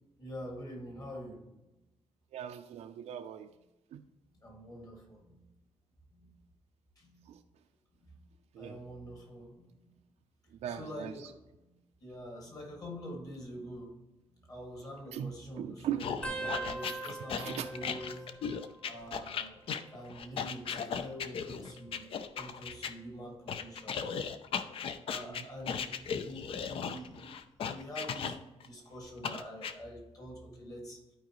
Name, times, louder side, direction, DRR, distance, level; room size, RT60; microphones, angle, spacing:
voice 1, 0.2-1.4 4.4-5.4 6.1-6.3 7.0-7.2 8.0-8.1 8.6-9.9 10.8-11.3 11.6-11.7 12.0-13.9 14.5-16.1 16.4-18.2 18.8-19.6 19.9-24.0 25.0-25.9 26.2-27.3 27.6-31.0, equal, 30° left, 0 dB, 2.1 m, -45 dB
voice 2, 2.3-3.5 3.9-4.0 7.3-7.4 8.5-8.8 10.5-11.3 15.1-16.1 17.0-17.1 17.4-17.7 25.3-25.5, right 10 dB, 70° right, 6 dB, 0.5 m, -39 dB
sound 1, 16.0-22.9 23.5-28.7 29.2-29.7, left 7 dB, 50° left, 0.5 m, -37 dB
sound 2, 16.2-19.4 19.7-20.3 21.3-22.8 23.4-23.7 24.9-25.3 26.8-26.9, right 3 dB, 10° left, 0.8 m, -44 dB
11.5 x 4.9 x 3.0 m, 1.0 s
wide cardioid pair, 165°, 12 cm